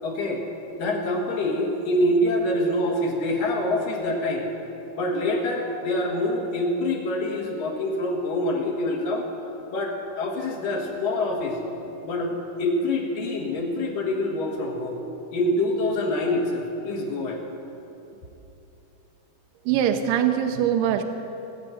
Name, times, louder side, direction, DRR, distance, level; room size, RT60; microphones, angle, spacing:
voice 1, 0.0-0.4 0.8-4.5 4.9-9.3 9.7-11.6 12.0-15.0 15.3-17.4, left 1 dB, 75° left, 0 dB, 3.3 m, -25 dB
voice 2, 19.7-21.0, right 9 dB, 80° right, 6 dB, 2.4 m, -22 dB
18.5 x 7.4 x 9.2 m, 2.9 s
omnidirectional pair, 4.0 m